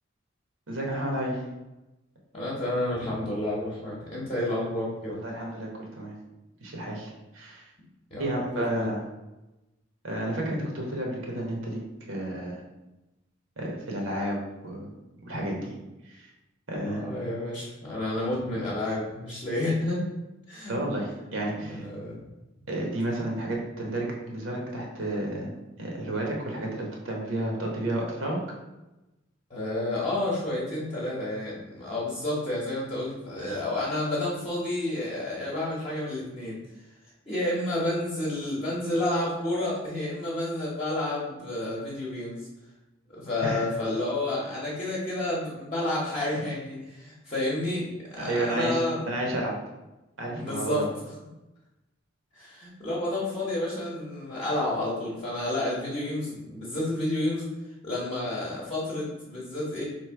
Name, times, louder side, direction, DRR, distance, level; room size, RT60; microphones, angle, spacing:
voice 1, 0.7-1.4 5.2-6.1 6.6-7.6 8.2-9.0 10.0-11.8 12.1-12.6 13.6-14.9 15.3-15.7 16.0-16.3 16.7-17.0 20.7-21.8 22.7-25.5 25.8-28.4 43.4-43.6 48.2-48.8 49.1-49.5 50.2-50.9, right 1 dB, 80° right, -1 dB, 1.0 m, -31 dB
voice 2, 2.3-5.2 8.1-8.9 16.8-20.0 20.5-20.7 21.7-22.2 29.5-36.6 37.3-42.5 43.1-49.1 50.4-50.9 52.4-57.5 57.8-59.8, left 1 dB, 30° left, -7 dB, 0.8 m, -30 dB
3.2 x 2.6 x 4.5 m, 1.0 s
head